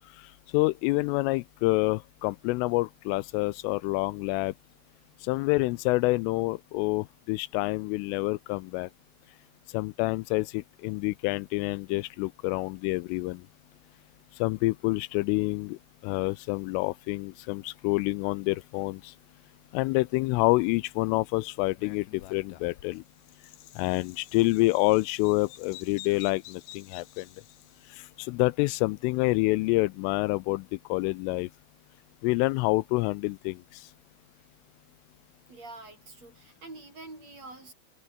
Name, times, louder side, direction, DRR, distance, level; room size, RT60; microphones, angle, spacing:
voice 1, 0.2-4.5 5.2-8.9 9.7-13.4 14.4-15.8 16.0-19.1 19.7-23.0 23.8-27.3 27.9-31.5 32.2-33.9, left 22 dB, 85° left, 3.0 m, -27 dB
Bird vocalization bird call bird song, 21.7-28.0, left 14 dB, 65° left, 3.1 m, -50 dB
voice 2, 35.5-37.7, right 2 dB, 30° right, 8.1 m, -46 dB
omnidirectional pair, 6.0 m